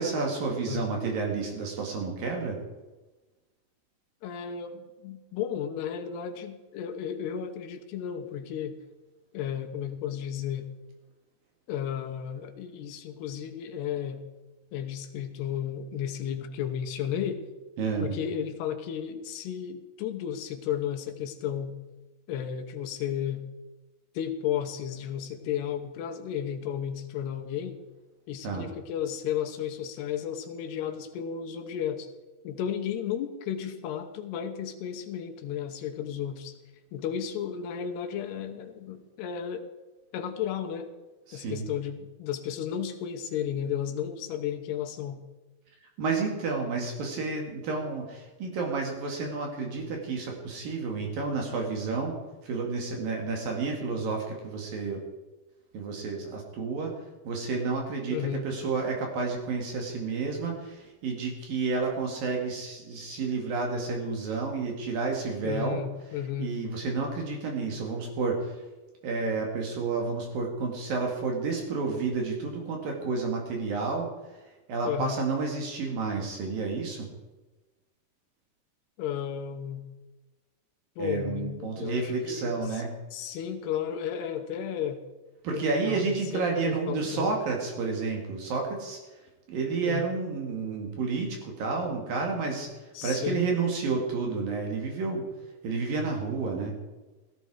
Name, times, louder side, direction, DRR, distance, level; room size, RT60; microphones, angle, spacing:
voice 1, 0.0-2.6 17.8-18.2 28.4-28.7 41.3-41.6 46.0-52.2 52.4-55.0 55.7-56.9 57.3-65.8 66.4-68.5 69.0-74.1 74.7-77.1 81.0-82.9 85.4-89.0 89.5-92.7 93.0-95.2 95.6-96.7, right 4 dB, 60° right, 1 dB, 3.8 m, -30 dB
voice 2, 4.2-8.8 9.3-10.7 11.7-14.2 14.7-17.4 18.0-21.7 22.3-23.4 24.1-27.8 28.3-32.1 32.4-36.6 36.9-39.7 40.1-40.9 41.3-45.2 58.1-58.5 65.4-66.5 74.8-75.2 79.0-79.9 81.0-82.8 83.1-85.0 85.5-87.3 89.8-90.1 92.9-93.4, left 9 dB, 90° left, 5 dB, 3.2 m, -33 dB
16.5 x 15.0 x 4.9 m, 1.1 s
omnidirectional pair, 4.6 m